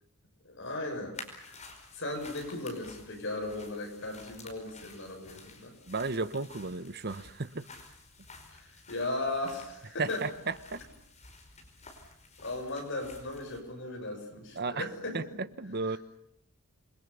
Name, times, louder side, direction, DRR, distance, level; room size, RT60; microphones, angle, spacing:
voice 1, 0.4-1.5 1.9-5.7 8.5-10.2 12.4-15.2, left 2 dB, 55° left, 3 dB, 7.0 m, -37 dB
sound 1, 1.1-13.6, left 3 dB, 30° left, 5.1 m, -52 dB
voice 2, 5.9-7.7 10.0-10.8 14.6-14.9 15.1-16.0, right 3 dB, 45° right, 14 dB, 1.1 m, -34 dB
27.5 x 23.0 x 7.0 m, 0.78 s
head